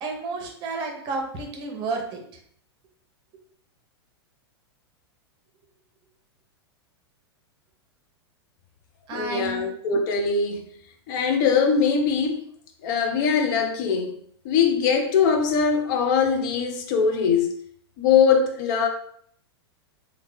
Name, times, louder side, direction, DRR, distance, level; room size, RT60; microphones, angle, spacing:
voice 1, 0.0-2.2 9.1-9.6, right 3 dB, 35° right, 0.8 m, -31 dB
voice 2, 9.1-10.6 11.1-12.4 12.8-14.1 14.4-17.5 18.0-18.9, left 6 dB, 45° left, 0.5 m, -21 dB
3.1 x 2.3 x 3.5 m
figure-of-eight pair, 100°, 14 cm